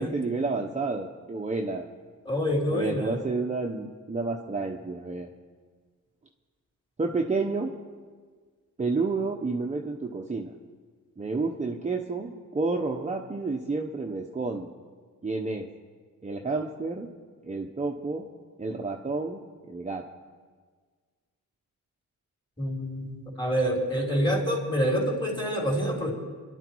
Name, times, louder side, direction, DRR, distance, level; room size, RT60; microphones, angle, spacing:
voice 1, 0.0-1.9 2.7-5.3 7.0-7.7 8.8-10.5 11.2-14.7 15.2-15.7 16.2-17.1 17.4-18.3 18.6-19.4 19.7-20.0, right 3 dB, 20° right, 1 dB, 1.0 m, -30 dB
voice 2, 2.2-3.2 22.6-26.1, equal, 15° left, -1 dB, 4.0 m, -27 dB
26.0 x 12.0 x 4.7 m, 1.6 s
cardioid pair, 120°, 34 cm